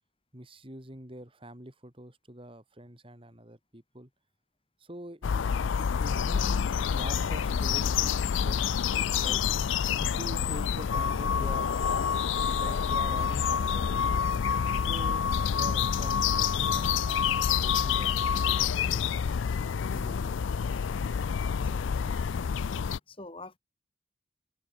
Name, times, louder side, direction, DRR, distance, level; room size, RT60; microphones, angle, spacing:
voice 1, 0.3-4.1 4.8-5.5 5.8-8.7 9.2-9.4 10.0-11.7 12.4-14.3 14.9-19.4 19.9-20.4, right 1 dB, 25° right, 3.9 m, -45 dB
sound 1, 5.2-23.0, left 7 dB, 70° left, 0.4 m, -28 dB
sound 2, 10.9-18.7, left 6 dB, 85° left, 0.8 m, -31 dB
voice 2, 23.1-23.6, left 2 dB, 25° left, 4.2 m, -48 dB
open air
head